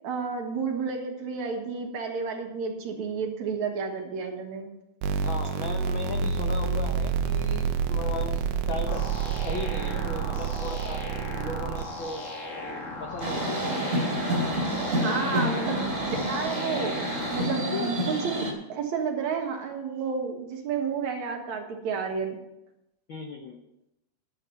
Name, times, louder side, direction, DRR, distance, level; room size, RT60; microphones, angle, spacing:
voice 1, 0.0-4.7 14.9-22.4, right 5 dB, 65° right, 2 dB, 2.7 m, -31 dB
sound 1, 5.0-11.9, right 6 dB, 80° right, 2.3 m, -28 dB
voice 2, 5.2-9.0 9.4-11.0 11.3-13.7 15.1-15.5 17.7-17.9 23.1-23.6, left 4 dB, 90° left, 2 dB, 1.0 m, -37 dB
sound 2, 8.9-17.4, left 2 dB, 55° left, 0.8 m, -37 dB
sound 3, 13.2-18.5, equal, 25° right, 2.7 m, -28 dB
11.0 x 8.2 x 5.8 m, 0.87 s
omnidirectional pair, 3.7 m